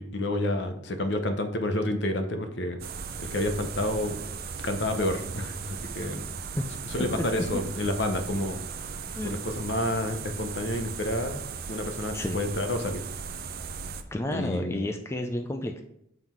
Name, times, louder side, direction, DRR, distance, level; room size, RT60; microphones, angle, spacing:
voice 1, 0.0-2.8 3.2-4.2 4.6-6.2 6.9-8.6 9.2-13.0 14.3-14.8, left 1 dB, 60° left, 7 dB, 0.8 m, -29 dB
sound 1, 2.8-14.0, right 5 dB, 50° right, 0.5 m, -37 dB
voice 2, 14.1-15.8, left 1 dB, 15° left, 5 dB, 0.4 m, -31 dB
7.2 x 3.9 x 4.5 m, 0.77 s
head